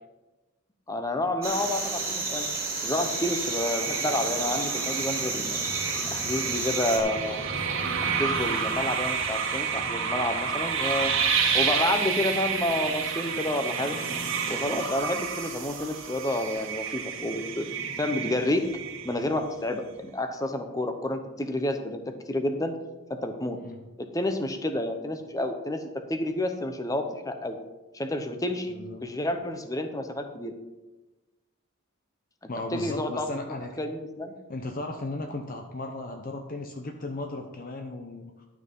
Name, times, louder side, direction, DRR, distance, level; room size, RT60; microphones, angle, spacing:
voice 1, 0.9-2.5 2.8-5.6 6.1-7.4 8.0-11.1 11.5-14.0 14.5-17.7 18.0-18.7 19.0-22.0 22.3-22.7 23.1-23.6 24.0-27.6 27.9-30.6 32.7-33.3 33.8-34.3, left 1 dB, 15° left, 7 dB, 0.8 m, -29 dB
sound 1, 1.4-7.0, right 3 dB, 15° right, 1.9 m, -31 dB
sound 2, 3.1-19.4, right 6 dB, 70° right, 1.8 m, -30 dB
voice 2, 28.7-29.1 32.5-33.7 34.5-38.5, left 2 dB, 40° left, 4 dB, 0.7 m, -36 dB
11.5 x 6.1 x 5.4 m, 1.1 s
head